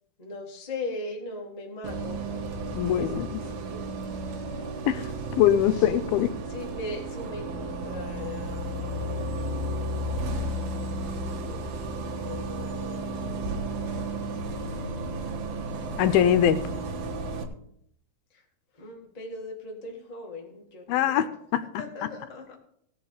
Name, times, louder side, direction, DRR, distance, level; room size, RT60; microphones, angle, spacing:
voice 1, 0.2-2.3 2.9-3.8 4.1-4.3 5.7-5.9 6.5-9.8 11.0-11.7 12.2-14.0 18.3-18.4 18.7-21.2 21.8-22.6, left 2 dB, 15° left, -1 dB, 1.3 m, -40 dB
Bus, 1.8-17.4, right 2 dB, 75° right, 3.2 m, -33 dB
voice 2, 2.7-3.3 4.9-5.0 5.3-6.3 16.0-16.6 20.9-21.3 21.5-21.6, left 10 dB, 80° left, 11 dB, 2.4 m, -22 dB
17.5 x 6.6 x 4.9 m, 0.71 s
omnidirectional pair, 4.3 m